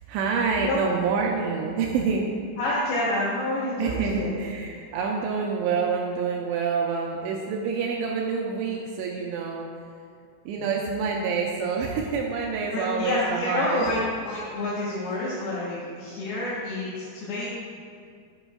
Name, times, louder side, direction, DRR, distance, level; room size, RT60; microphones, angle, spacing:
voice 1, 0.0-2.3 3.8-9.7 10.5-13.9, right 5 dB, 85° right, 0 dB, 2.9 m, -27 dB
voice 2, 2.6-4.3 10.6-10.7 12.7-17.5, left 2 dB, 70° left, -8 dB, 2.7 m, -28 dB
11.0 x 7.9 x 2.3 m, 2.3 s
omnidirectional pair, 5.5 m